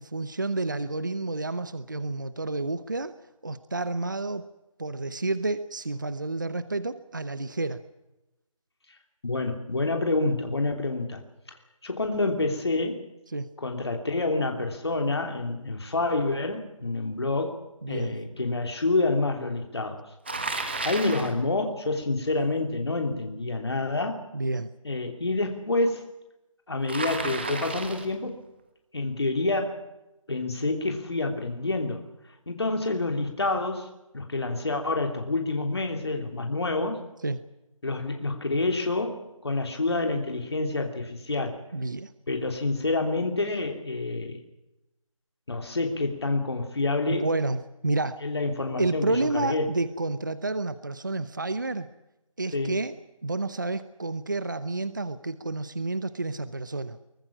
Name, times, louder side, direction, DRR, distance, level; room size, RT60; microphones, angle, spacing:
voice 1, 0.0-3.1 3.4-4.4 4.8-7.8 13.3-13.5 17.8-18.2 24.3-24.7 37.2-37.4 41.7-42.1 47.1-48.2 48.8-51.9 52.4-53.0 53.2-57.0, right 2 dB, 35° right, 14 dB, 0.8 m, -30 dB
voice 2, 9.2-11.2 11.8-13.0 13.6-17.6 17.9-20.0 20.8-24.2 24.8-26.1 26.7-28.4 28.9-29.8 30.3-32.0 32.5-33.9 34.1-37.0 37.8-41.7 42.3-44.4 45.5-47.3 48.2-49.1 49.3-49.7 52.5-52.8, left 2 dB, 50° left, 4 dB, 3.1 m, -28 dB
Bicycle, 20.2-21.4 26.9-28.1, right 3 dB, 20° right, 1.6 m, -32 dB
23.5 x 19.5 x 7.3 m, 0.94 s
figure-of-eight pair, 180°, 17 cm